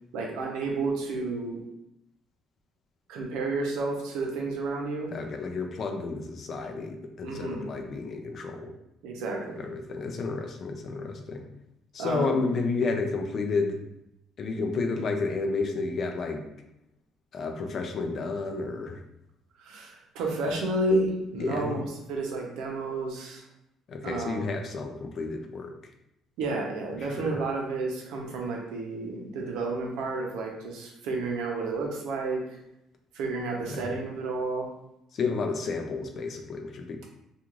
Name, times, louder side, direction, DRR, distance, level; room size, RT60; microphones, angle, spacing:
voice 1, 0.1-1.6 3.1-5.1 7.2-7.7 9.0-9.6 12.0-12.4 19.6-23.4 24.0-24.4 26.4-32.4 33.1-34.7, right 2 dB, 85° right, 0 dB, 0.7 m, -31 dB
voice 2, 5.1-8.7 9.6-11.4 11.9-13.8 14.4-16.4 17.3-19.0 20.5-20.6 21.4-21.9 23.9-25.7 26.9-27.4 33.7-33.9 35.1-37.1, left 4 dB, 45° left, 4 dB, 0.4 m, -31 dB
2.4 x 2.4 x 3.1 m, 0.83 s
cardioid pair, 135°, 0 cm